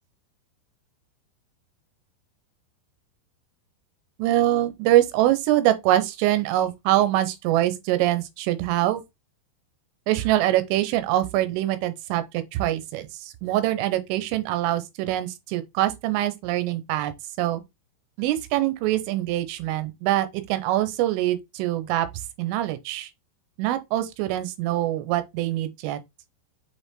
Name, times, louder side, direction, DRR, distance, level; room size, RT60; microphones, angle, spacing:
voice 1, 4.2-9.0 10.1-17.1 17.4-17.6 18.2-22.1 22.4-23.1 23.6-26.0, right 14 dB, 85° right, 3.6 m, -24 dB
7.1 x 5.6 x 3.7 m
omnidirectional pair, 5.6 m